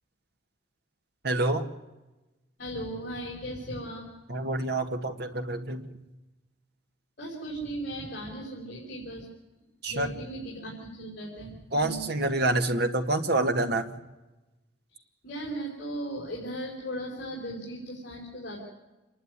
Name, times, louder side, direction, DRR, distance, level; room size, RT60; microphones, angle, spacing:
voice 1, 1.2-1.7 4.3-5.8 9.8-10.1 11.7-13.8, right 2 dB, 55° right, 6 dB, 1.7 m, -27 dB
voice 2, 2.6-4.1 7.2-9.3 9.9-12.2 14.9-18.6, right 1 dB, 55° left, -4 dB, 5.3 m, -37 dB
27.0 x 11.5 x 9.7 m, 1.1 s
head